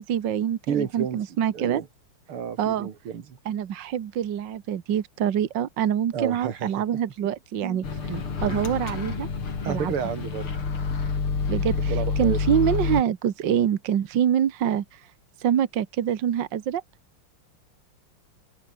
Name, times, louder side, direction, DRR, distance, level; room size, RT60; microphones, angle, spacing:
voice 1, 0.0-1.8 2.6-2.9 3.5-7.8 8.4-9.3 9.7-9.9 11.5-15.0 15.4-16.8, right 9 dB, 60° right, 1.9 m, -25 dB
voice 2, 0.7-1.2 1.5-1.9 2.3-3.4 6.1-6.7 7.2-7.3 7.6-7.8 8.1-8.2 8.5-8.6 9.6-10.6 11.9-12.4, right 7 dB, 90° right, 2.8 m, -31 dB
Microwave oven, 7.8-13.0, left 5 dB, 90° left, 4.2 m, -28 dB
open air
omnidirectional pair, 2.3 m